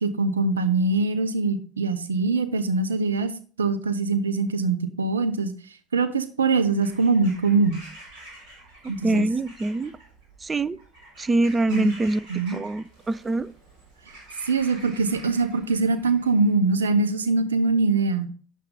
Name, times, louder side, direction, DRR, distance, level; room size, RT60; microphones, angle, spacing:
voice 1, 0.0-3.3 3.6-5.5 5.9-7.8 8.9-9.3 11.7-11.9 12.3-12.6 14.4-18.3, right 3 dB, 90° right, 0.7 m, -23 dB
Bird vocalization bird call bird song / Crow, 6.7-16.5, right 1 dB, 65° right, 4.2 m, -48 dB
voice 2, 8.8-9.9 10.4-10.8 11.2-13.5, right 2 dB, 25° right, 0.5 m, -24 dB
8.4 x 7.2 x 3.8 m
hypercardioid pair, 65°, 0 cm